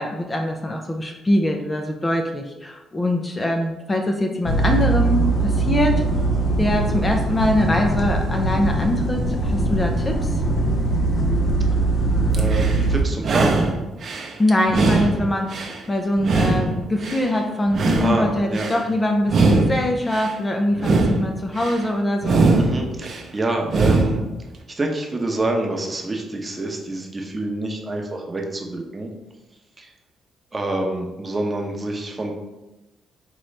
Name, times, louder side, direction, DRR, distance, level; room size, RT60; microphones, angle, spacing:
voice 1, 0.0-6.0 6.6-10.4 14.4-15.5 15.9-22.5, left 1 dB, 20° left, 3 dB, 0.5 m, -23 dB
sound 1, 4.4-13.0, right 2 dB, 50° left, 0.9 m, -21 dB
voice 2, 12.3-13.7 18.0-18.9 22.6-24.2 24.8-29.1 29.8-29.9 30.5-32.3, right 2 dB, 25° right, 1 dB, 0.8 m, -26 dB
sound 2, 12.3-12.8 13.2-14.3 14.7-15.8 16.2-17.3 17.7-18.8 19.2-20.3 20.7-21.8 22.2-23.2 23.7-24.3, right 3 dB, 55° right, 0.7 m, -21 dB
5.2 x 3.0 x 3.2 m, 1.0 s
cardioid pair, 90°, 0 cm